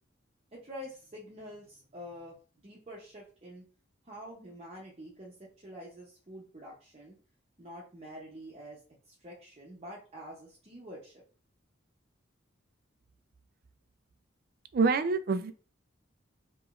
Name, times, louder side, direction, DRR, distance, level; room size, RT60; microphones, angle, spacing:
voice 1, 0.5-3.6 4.0-7.2 7.6-8.8 9.1-11.2, equal, 30° right, -3 dB, 0.8 m, -47 dB
voice 2, 14.7-15.5, right 4 dB, 50° right, 12 dB, 0.4 m, -26 dB
4.8 x 3.0 x 2.5 m, 0.38 s
head